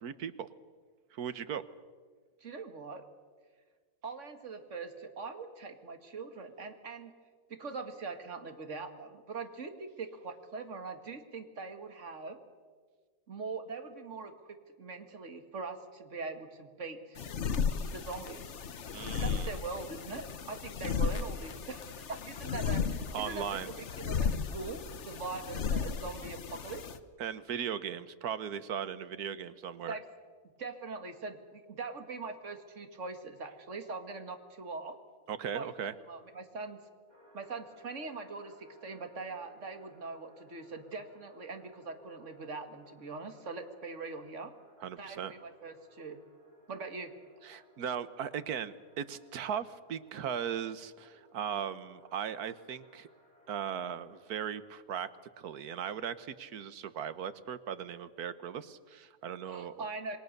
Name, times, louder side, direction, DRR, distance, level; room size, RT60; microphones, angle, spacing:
voice 1, 0.0-0.5 1.1-1.6 18.9-19.5 23.1-23.7 27.2-30.0 35.3-35.9 44.8-45.3 47.4-53.1 53.5-55.1 55.4-59.9, right 8 dB, 85° right, 14 dB, 1.5 m, -38 dB
voice 2, 2.4-3.1 4.0-7.1 7.5-12.4 13.3-17.2 17.9-18.5 19.2-23.5 23.8-26.8 29.9-30.0 30.6-35.0 35.5-35.7 36.1-36.8 37.3-44.5 45.0-46.2 46.7-47.1 59.5-60.2, right 4 dB, 55° right, 7 dB, 2.2 m, -42 dB
sound 1, 17.2-27.0, left 6 dB, 55° left, 1.2 m, -35 dB
sound 2, 37.1-54.6, equal, 25° right, 5.6 m, -62 dB
27.5 x 21.5 x 6.7 m, 1.6 s
omnidirectional pair, 1.6 m